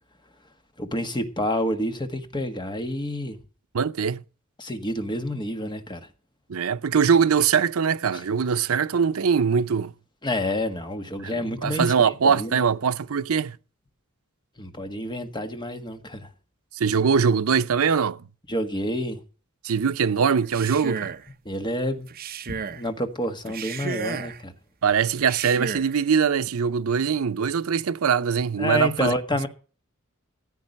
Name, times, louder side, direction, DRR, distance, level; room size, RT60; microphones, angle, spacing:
voice 1, 0.8-3.4 4.6-6.1 10.2-11.9 12.2-12.6 14.6-16.3 18.5-19.2 21.4-22.1 22.7-24.5 28.6-29.5, left 1 dB, 20° left, 1.5 m, -28 dB
voice 2, 3.7-4.2 6.5-9.9 11.2-13.6 16.7-18.2 19.6-21.1 24.8-29.1, right 6 dB, 80° right, 0.6 m, -22 dB
Male speech man speaking, 20.4-21.3 22.1-22.8 23.4-24.4 25.2-25.9, right 5 dB, 45° right, 0.7 m, -33 dB
15.0 x 8.2 x 5.3 m
head